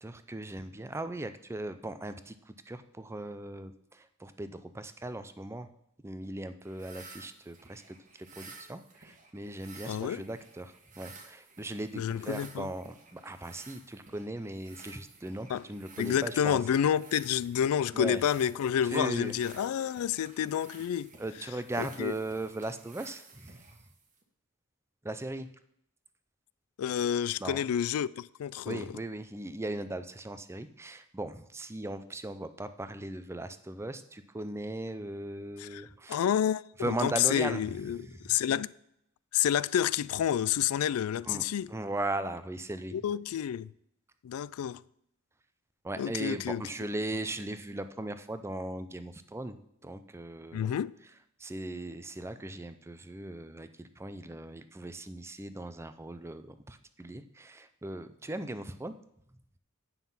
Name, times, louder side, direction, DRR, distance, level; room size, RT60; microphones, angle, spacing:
voice 1, 0.0-5.7 6.0-16.6 17.9-18.2 18.8-19.3 21.2-23.8 25.0-25.5 27.4-27.6 28.6-36.2 36.8-38.4 41.2-42.9 45.8-50.8 51.4-58.9, right 1 dB, 10° right, 0.5 m, -38 dB
sound 1, 6.6-24.2, right 4 dB, 35° right, 1.2 m, -53 dB
voice 2, 9.9-10.2 12.0-12.7 15.5-15.6 16.0-21.1 21.8-22.1 26.8-28.9 35.6-35.8 36.1-38.0 38.2-38.7 39.3-41.7 42.9-43.7 44.2-44.8 46.0-46.6 50.5-51.0, left 9 dB, 85° left, 0.3 m, -29 dB
9.3 x 5.8 x 5.5 m
head